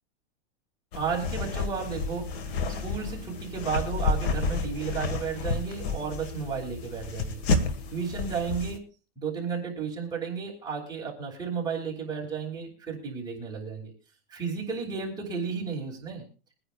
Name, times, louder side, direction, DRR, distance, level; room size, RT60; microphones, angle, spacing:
sound 1, 0.9-8.8, left 3 dB, 55° left, 2.0 m, -31 dB
voice 1, 0.9-2.3 2.8-7.4 7.9-8.8 9.2-13.9 14.3-16.3, right 6 dB, 10° right, -4 dB, 3.0 m, -33 dB
23.0 x 9.8 x 2.6 m, 0.35 s
supercardioid pair, 155°, 37 cm